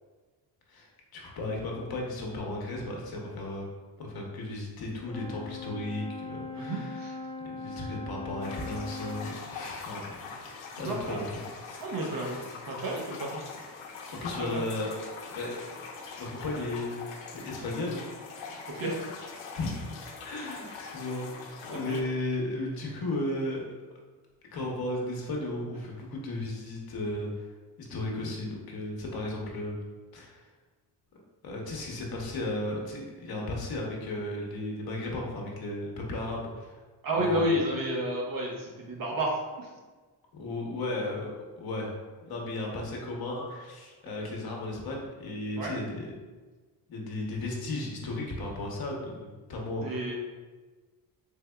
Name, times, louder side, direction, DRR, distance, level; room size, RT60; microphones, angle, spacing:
voice 1, 0.7-3.7 4.0-7.1 7.4-10.4 10.8-11.2 11.6-11.8 14.2-15.6 16.2-17.0 17.3-18.0 19.5-19.9 20.2-23.6 24.5-27.5 27.8-29.8 30.1-30.4 31.4-36.7 37.1-37.5 40.3-41.3 41.6-41.9 42.2-46.1 46.9-50.1, left 2 dB, 55° left, -1 dB, 0.9 m, -35 dB
Brass instrument, 5.1-9.5, left 3 dB, 10° left, 0.7 m, -40 dB
voice 2, 6.6-7.1 10.8-11.2 11.8-13.4 14.4-14.6 18.7-19.2 21.7-22.0 37.0-39.7 45.6-45.7 49.8-50.1, right 1 dB, 50° right, -2 dB, 0.8 m, -31 dB
sound 1, 8.4-22.0, left 4 dB, 85° left, 0.7 m, -43 dB
3.5 x 3.3 x 2.2 m, 1.3 s
cardioid pair, 95°, 43 cm